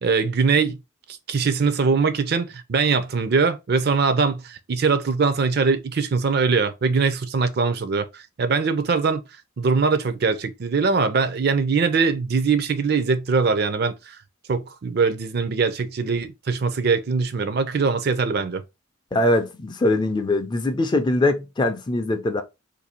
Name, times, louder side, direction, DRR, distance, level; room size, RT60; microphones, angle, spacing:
voice 1, 0.0-0.8 1.1-9.2 9.6-14.2 14.5-18.6, right 4 dB, 50° right, 0.4 m, -22 dB
voice 2, 19.1-22.4, left 2 dB, 20° left, 0.4 m, -22 dB
2.6 x 2.6 x 4.2 m
head